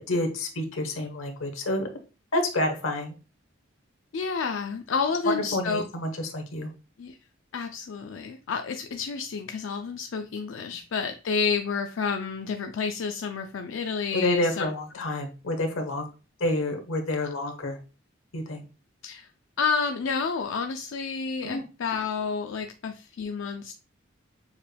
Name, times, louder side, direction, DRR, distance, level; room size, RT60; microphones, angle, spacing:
voice 1, 0.0-1.9 2.3-3.1 5.3-6.7 14.1-16.1 16.4-17.8 18.3-18.6 21.4-21.6, left 1 dB, 90° left, 5 dB, 1.0 m, -28 dB
voice 2, 4.1-5.8 7.0-7.2 7.5-14.7 15.0-15.1 19.0-19.3 19.6-23.7, left 5 dB, 70° left, 6 dB, 0.4 m, -30 dB
7.1 x 3.4 x 2.2 m, 0.33 s
head